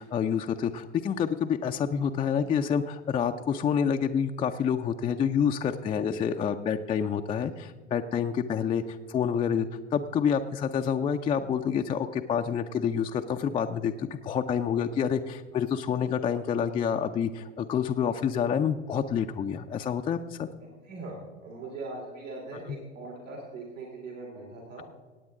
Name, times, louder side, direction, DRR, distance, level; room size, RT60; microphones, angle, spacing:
voice 1, 0.0-20.5, left 7 dB, 15° left, 5 dB, 0.3 m, -28 dB
voice 2, 20.8-24.8, right 3 dB, 80° right, -3 dB, 3.1 m, -40 dB
17.5 x 8.7 x 3.7 m, 1.3 s
figure-of-eight pair, 85°, 38 cm